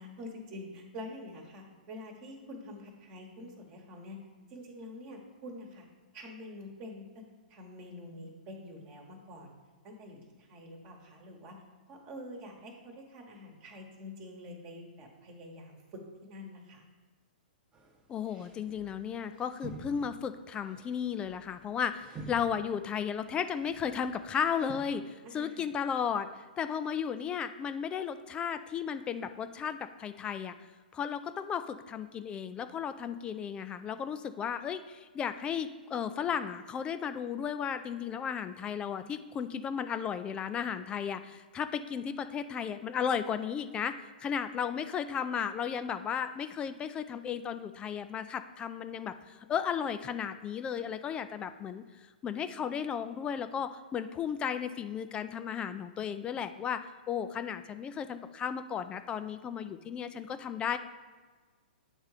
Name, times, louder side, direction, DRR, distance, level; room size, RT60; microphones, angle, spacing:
voice 1, 0.0-4.2 4.5-5.9 6.1-7.2 7.5-9.5 9.8-11.6 11.9-16.8 25.2-25.7, left 1 dB, 40° right, 1 dB, 1.2 m, -46 dB
sound 1, 17.7-18.0 18.3-24.7, right 3 dB, 20° right, 0.9 m, -50 dB
voice 2, 18.1-30.6 30.9-43.9 44.2-56.8 57.1-60.8, left 7 dB, 20° left, 11 dB, 0.3 m, -34 dB
8.3 x 3.6 x 4.9 m, 1.4 s
hypercardioid pair, 120°, 5 cm